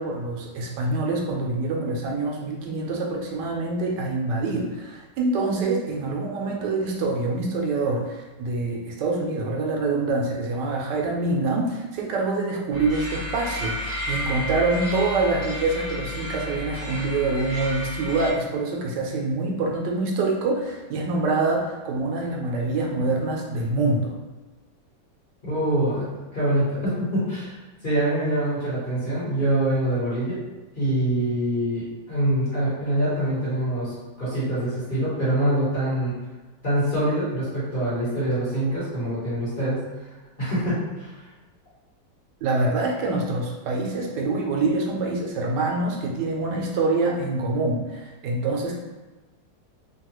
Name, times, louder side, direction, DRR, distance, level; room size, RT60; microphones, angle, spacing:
voice 1, 0.0-24.1 42.4-48.7, right 3 dB, 80° right, 0 dB, 1.2 m, -25 dB
sound 1, 12.7-18.3, left 1 dB, 5° right, 1.1 m, -32 dB
voice 2, 25.4-27.5 27.8-30.4 30.7-36.1 36.6-39.8 40.4-41.2, right 1 dB, 30° left, -10 dB, 1.2 m, -25 dB
3.1 x 2.3 x 2.9 m, 1.2 s
omnidirectional pair, 1.9 m